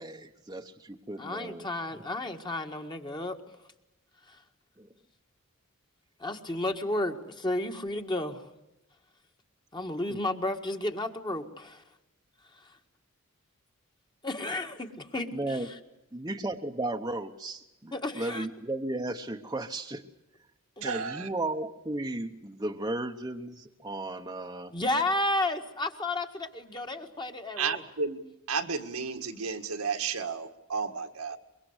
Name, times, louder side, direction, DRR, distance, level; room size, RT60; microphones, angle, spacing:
voice 1, 0.0-1.7 4.8-4.9 10.1-10.2 15.3-15.7 16.1-20.0 20.8-24.7, right 2 dB, 15° right, 3 dB, 1.0 m, -35 dB
voice 2, 1.2-3.4 4.3-4.4 6.2-8.5 9.7-11.8 12.6-12.7 14.2-15.8 17.9-18.5 20.8-20.9 24.7-27.8, left 2 dB, 20° left, 5 dB, 1.7 m, -32 dB
voice 3, 20.8-21.3 27.6-28.2 28.5-31.4, right 5 dB, 80° right, 6 dB, 1.8 m, -32 dB
24.0 x 23.0 x 8.1 m, 0.90 s
head